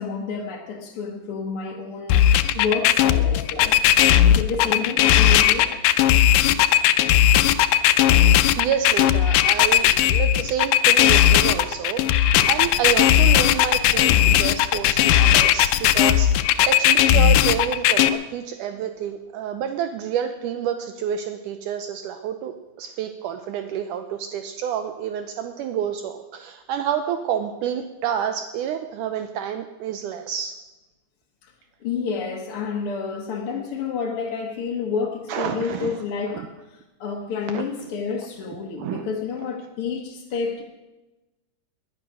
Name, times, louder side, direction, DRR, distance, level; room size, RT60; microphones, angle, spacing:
voice 1, 0.0-3.8 4.3-5.7 31.4-31.5 31.8-40.6, left 5 dB, 50° left, 0 dB, 1.9 m, -29 dB
sound 1, 2.1-18.1, left 11 dB, 85° left, 2.3 m, -17 dB
voice 2, 8.6-30.6 35.3-36.0 36.3-36.5 37.5-37.6 38.8-39.0, right 9 dB, 75° right, 7 dB, 2.2 m, -29 dB
20.0 x 11.0 x 6.3 m, 1.1 s
omnidirectional pair, 3.8 m